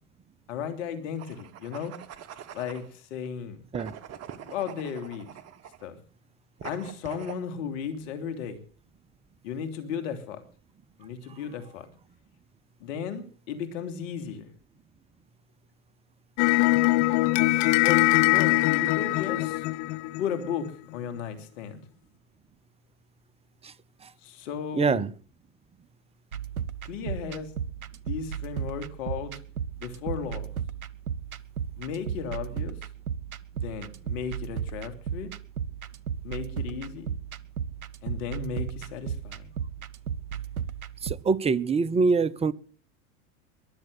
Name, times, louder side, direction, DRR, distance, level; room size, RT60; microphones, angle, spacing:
voice 1, 0.5-2.0 2.5-3.6 4.5-5.3 5.8-6.0 6.6-8.6 9.4-10.4 11.0-11.9 12.8-14.5 17.8-19.7 20.2-21.8 24.2-25.0 26.8-27.5 28.0-29.4 29.8-30.5 31.8-32.8 33.5-35.3 36.2-37.1 38.0-39.5, left 7 dB, 65° left, 3.2 m, -35 dB
sound 1, 1.1-2.9 3.7-5.9 6.6-7.4, right 9 dB, 35° right, 1.6 m, -43 dB
sound 2, 16.4-20.7, left 20 dB, 45° left, 0.8 m, -22 dB
voice 2, 24.8-25.1 41.0-42.5, right 4 dB, 15° right, 0.7 m, -24 dB
sound 3, 26.3-41.1, right 8 dB, 90° right, 1.0 m, -35 dB
22.5 x 7.6 x 8.0 m
hypercardioid pair, 95°, 42 cm